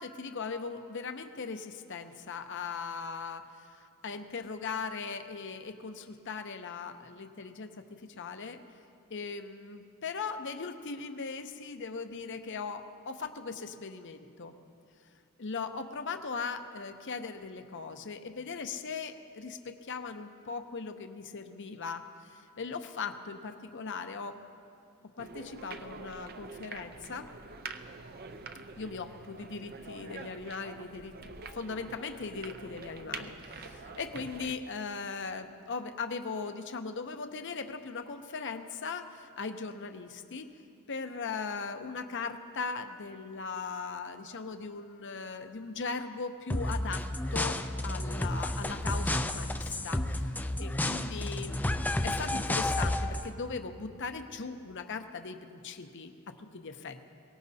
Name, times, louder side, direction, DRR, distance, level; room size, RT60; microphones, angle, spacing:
voice 1, 0.0-7.7 8.0-8.6 9.1-14.5 15.4-24.4 25.2-27.3 28.8-31.1 31.5-40.5 40.9-50.3 50.6-57.1, left 4 dB, 55° left, 7 dB, 0.8 m, -39 dB
sound 1, 25.2-34.5, right 4 dB, 45° right, 0.6 m, -45 dB
sound 2, 46.5-53.3, left 1 dB, 10° left, 0.4 m, -31 dB
23.0 x 18.0 x 2.8 m, 2.5 s
head